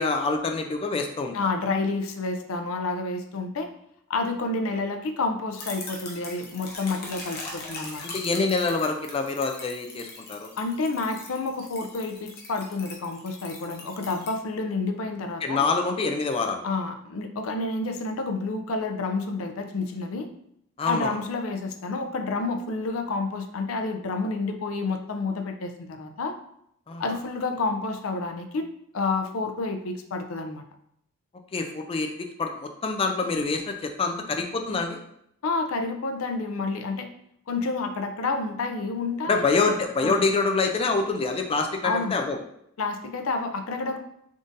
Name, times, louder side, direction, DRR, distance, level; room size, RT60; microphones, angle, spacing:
voice 1, 0.0-1.5 8.0-10.5 15.4-16.7 20.8-21.2 26.9-27.0 31.5-35.0 39.3-42.4, left 4 dB, 25° left, 4 dB, 0.3 m, -26 dB
voice 2, 1.3-3.7 4.1-8.0 10.6-15.6 16.6-20.3 20.8-26.3 27.0-28.7 28.9-30.6 35.4-37.1 37.5-39.8 40.0-40.2 41.8-42.2 42.8-44.0, left 3 dB, 80° left, 6 dB, 0.5 m, -29 dB
sound 1, 5.6-14.3, left 3 dB, 50° left, 1.0 m, -41 dB
3.6 x 2.5 x 3.9 m, 0.73 s
head